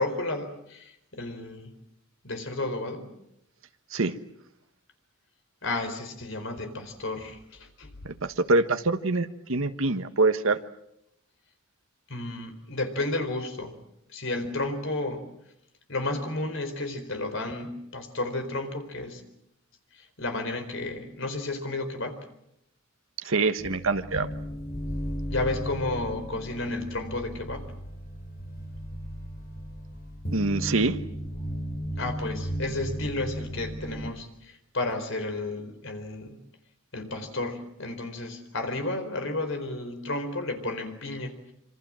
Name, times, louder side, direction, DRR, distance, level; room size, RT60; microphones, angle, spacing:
voice 1, 0.0-1.7 2.2-3.2 5.6-7.9 12.1-13.8 14.1-15.2 15.9-19.2 19.9-22.2 25.3-27.6 32.0-36.4 36.9-41.5, left 2 dB, 60° left, 8 dB, 4.3 m, -32 dB
voice 2, 8.0-10.6 23.2-24.3 30.3-31.0, right 3 dB, 70° right, 8 dB, 1.3 m, -25 dB
sound 1, 23.6-34.1, equal, 45° left, 4.7 m, -35 dB
27.0 x 25.0 x 7.6 m, 0.78 s
head